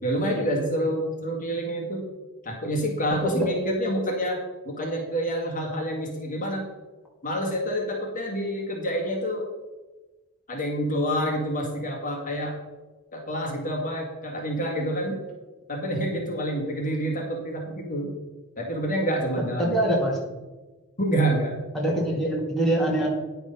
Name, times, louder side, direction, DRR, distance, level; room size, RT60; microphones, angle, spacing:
voice 1, 0.0-2.0 2.4-4.4 4.7-6.6 7.2-9.5 10.5-12.5 13.1-15.2 15.7-18.1 18.6-19.8 21.0-21.5, equal, 35° left, -1 dB, 1.9 m, -27 dB
voice 2, 19.6-20.2 21.7-23.1, right 1 dB, ahead, -5 dB, 2.3 m, -24 dB
10.0 x 6.7 x 5.4 m, 1.2 s
head